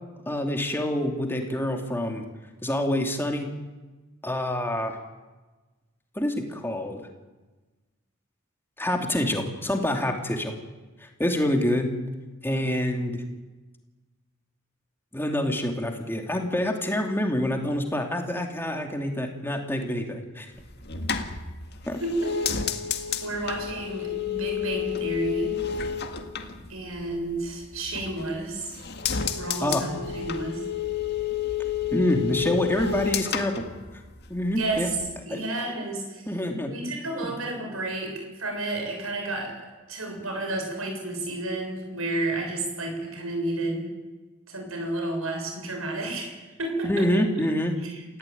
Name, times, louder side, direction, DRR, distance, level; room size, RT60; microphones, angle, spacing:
voice 1, 0.3-2.2 2.6-3.5 4.2-5.0 6.1-7.0 8.8-10.5 11.0-11.9 12.4-13.2 15.1-20.5 21.9-22.0 29.6-29.8 31.9-33.6 34.3-34.9 35.3-35.4 36.3-36.7 37.2-37.3 46.8-47.8, left 1 dB, 10° left, 3 dB, 2.7 m, -26 dB
sound 1, 20.6-27.4 27.7-28.4 28.7-34.4 34.7-35.2, left 8 dB, 50° left, 1.9 m, -30 dB
voice 2, 22.0-22.3 23.2-25.6 26.7-28.8 29.3-30.6 34.5-35.0 35.3-36.3 36.7-43.9 44.5-47.1 47.8-48.2, right 2 dB, 90° right, 3 dB, 7.0 m, -31 dB
28.5 x 15.5 x 9.3 m, 1.2 s
head